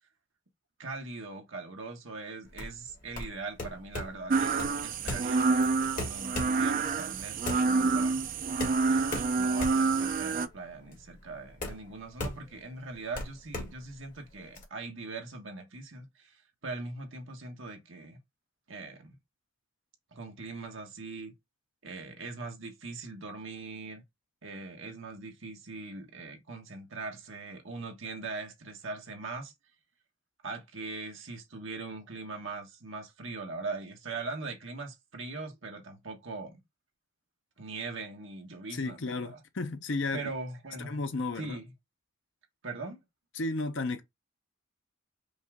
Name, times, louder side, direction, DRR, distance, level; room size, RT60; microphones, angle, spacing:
voice 1, 0.8-8.2 8.8-18.2 18.7-19.2 20.1-21.3 21.8-24.0 24.4-29.5 30.4-36.6 37.6-39.4 40.1-41.0 41.4-41.7 42.6-43.0, right 3 dB, 60° right, 1.2 m, -41 dB
sound 1, 2.5-14.6, left 2 dB, 40° left, 1.6 m, -39 dB
sound 2, 4.3-10.5, right 4 dB, 40° right, 0.3 m, -28 dB
voice 2, 38.7-40.2 40.8-41.6 43.3-44.0, left 3 dB, 55° left, 0.7 m, -33 dB
5.4 x 2.5 x 3.5 m
head